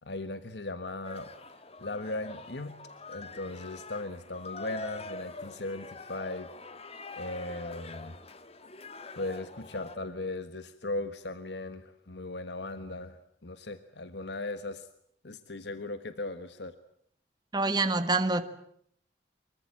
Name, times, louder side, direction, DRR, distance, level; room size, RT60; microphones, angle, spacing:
voice 1, 0.0-1.3 1.8-2.7 3.1-6.5 7.2-8.2 9.1-14.9 15.2-16.7, left 2 dB, 70° left, 1.4 m, -38 dB
sound 1, 1.0-10.0, left 3 dB, 35° left, 1.9 m, -44 dB
voice 2, 17.5-18.4, right 3 dB, 25° right, 1.5 m, -26 dB
25.0 x 23.0 x 8.8 m
head